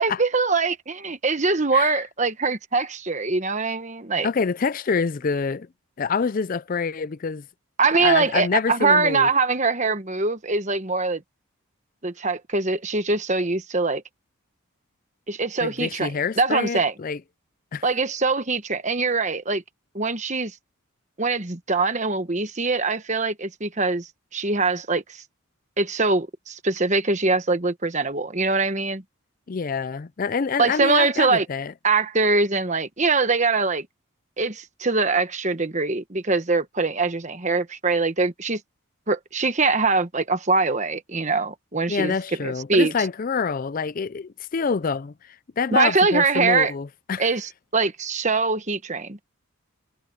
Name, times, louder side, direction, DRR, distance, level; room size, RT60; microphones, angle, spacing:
voice 1, 0.0-4.3 7.8-11.2 12.0-14.0 15.3-16.9 17.8-19.6 19.9-20.5 21.2-25.2 25.8-29.0 30.6-31.5 31.8-33.9 34.4-38.6 39.1-42.1 42.4-42.9 45.7-46.7 47.2-49.2, right 3 dB, 35° right, 1.2 m, -23 dB
voice 2, 4.2-5.7 6.0-7.4 8.0-9.3 15.6-17.2 17.7-17.8 29.5-31.7 41.9-45.1 45.6-47.3, left 5 dB, 40° left, 0.4 m, -26 dB
head